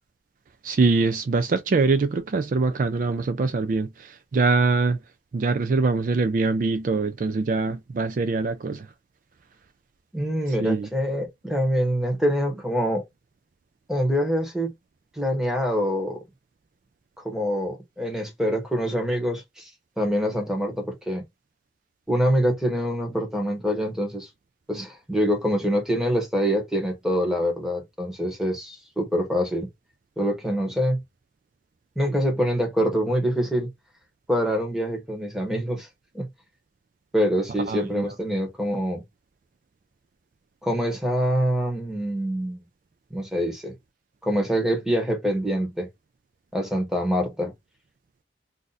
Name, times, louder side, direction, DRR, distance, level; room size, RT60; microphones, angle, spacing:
voice 1, 0.6-5.0 5.3-8.9 10.6-10.9 37.7-38.1, right 3 dB, 45° right, 0.3 m, -23 dB
voice 2, 10.1-13.0 13.9-14.7 15.2-16.2 17.2-19.7 20.0-21.2 22.1-24.3 24.7-29.7 30.2-31.0 32.0-33.7 34.3-35.9 36.1-36.2 37.1-39.0 40.6-42.6 43.1-43.7 44.2-45.9 46.5-47.5, equal, 5° right, 1.1 m, -25 dB
2.7 x 2.4 x 3.9 m
head